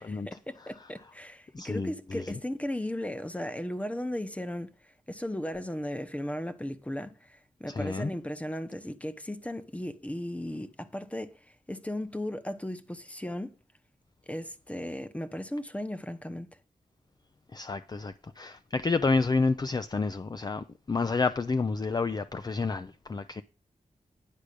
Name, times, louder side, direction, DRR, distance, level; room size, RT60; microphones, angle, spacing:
voice 1, 0.0-13.5 14.3-16.6, left 1 dB, 10° left, 0.9 m, -36 dB
voice 2, 1.5-2.4 7.7-8.1 17.5-23.4, left 4 dB, 30° left, 0.5 m, -29 dB
10.0 x 4.8 x 6.7 m
wide cardioid pair, 95°, 14 cm